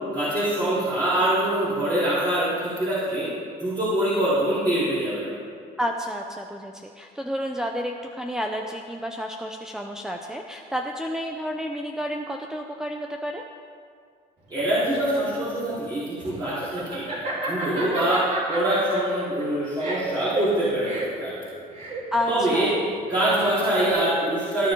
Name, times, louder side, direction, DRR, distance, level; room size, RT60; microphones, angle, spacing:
voice 1, 0.1-3.2 3.6-5.2 14.5-17.0 17.5-18.2 18.5-21.3 22.3-22.7 23.1-24.7, right 1 dB, 25° right, -11 dB, 4.0 m, -24 dB
voice 2, 5.8-13.4 22.1-23.0, equal, 5° right, 2 dB, 0.7 m, -30 dB
Laughter, 14.5-23.9, right 2 dB, 45° right, 3.7 m, -33 dB
19.5 x 10.0 x 3.9 m, 2.2 s
cardioid pair, 110°, 17 cm